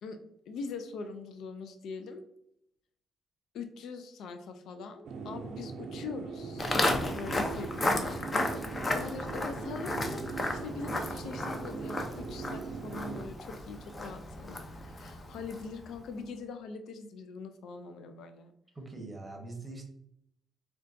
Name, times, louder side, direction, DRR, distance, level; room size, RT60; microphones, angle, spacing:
voice 1, 0.5-2.2 3.5-6.8 7.1-18.5, left 4 dB, 75° left, 7 dB, 0.3 m, -43 dB
sound 1, 5.0-13.2, right 5 dB, 70° right, 0.4 m, -40 dB
Walk footsteps, 6.6-15.8, left 2 dB, 30° left, 0.5 m, -34 dB
voice 2, 18.7-19.9, right 2 dB, 15° right, 3 dB, 0.8 m, -42 dB
3.8 x 2.2 x 2.5 m, 0.75 s
cardioid pair, 90°, 0 cm